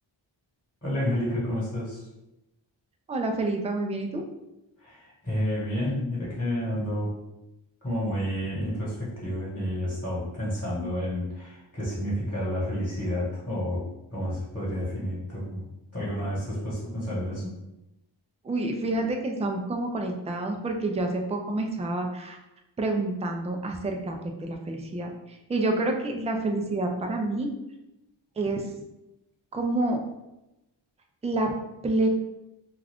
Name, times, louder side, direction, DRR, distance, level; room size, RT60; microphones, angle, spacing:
voice 1, 0.8-2.1 4.8-7.1 7.8-15.6 15.9-17.6, equal, 20° left, -7 dB, 1.3 m, -30 dB
voice 2, 3.1-4.2 18.4-22.4 22.8-27.5 28.4-28.7 29.5-30.0 31.2-31.5 31.8-32.1, right 2 dB, 15° right, 3 dB, 0.3 m, -28 dB
2.4 x 2.3 x 3.4 m, 0.94 s
wide cardioid pair, 60°, 47 cm